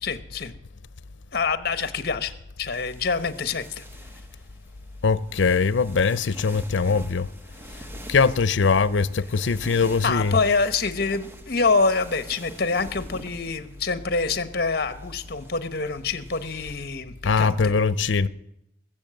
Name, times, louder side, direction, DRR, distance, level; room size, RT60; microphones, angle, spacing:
voice 1, 0.0-0.5 1.3-3.9 10.0-17.7, left 4 dB, 55° left, 1.0 m, -26 dB
sound 1, 2.7-16.8, right 1 dB, 10° right, 0.9 m, -46 dB
voice 2, 5.0-7.3 8.1-10.3 17.2-18.3, left 5 dB, 80° left, 0.6 m, -21 dB
19.5 x 7.5 x 7.7 m
head